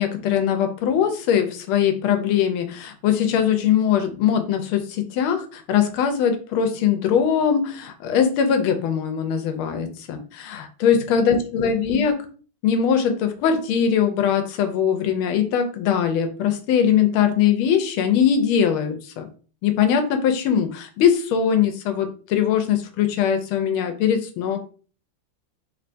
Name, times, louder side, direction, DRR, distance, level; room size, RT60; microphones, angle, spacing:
voice 1, 0.0-12.2 12.6-19.2 19.6-24.6, left 8 dB, 80° left, 7 dB, 1.4 m, -21 dB
3.3 x 3.2 x 2.5 m, 0.39 s
omnidirectional pair, 2.4 m